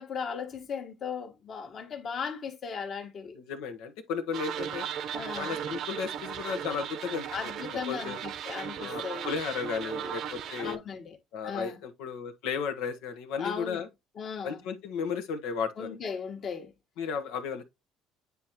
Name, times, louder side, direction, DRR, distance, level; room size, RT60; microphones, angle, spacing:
voice 1, 0.0-3.4 5.1-5.6 7.3-9.3 10.0-10.1 10.6-11.2 11.4-11.8 13.4-13.8 14.1-14.6 15.8-16.7, left 6 dB, 40° left, 1.5 m, -37 dB
voice 2, 3.3-4.9 5.3-7.3 7.9-8.2 8.8-10.8 11.3-13.9 14.4-15.9 17.0-17.6, left 6 dB, 85° left, 1.2 m, -34 dB
sound 1, 4.3-10.8, right 8 dB, 55° right, 0.7 m, -37 dB
9.4 x 3.7 x 2.9 m
cardioid pair, 135°, 0 cm